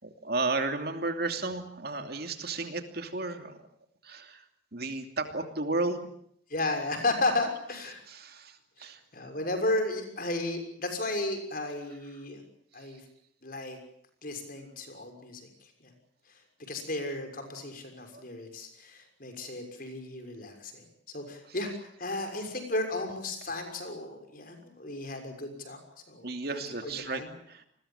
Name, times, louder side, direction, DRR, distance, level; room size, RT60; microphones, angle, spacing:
voice 1, 0.0-3.6 4.0-4.4 4.7-6.1 8.1-9.0 12.8-13.0 18.1-18.2 26.2-27.2 27.5-27.7, right 3 dB, 55° right, 6 dB, 2.9 m, -33 dB
voice 2, 6.5-8.0 8.8-12.4 12.7-13.0 13.4-13.8 14.2-15.5 15.8-15.9 16.7-20.9 21.1-25.8 26.1-27.3, left 2 dB, 45° left, 6 dB, 6.2 m, -34 dB
29.5 x 21.0 x 7.4 m, 0.70 s
head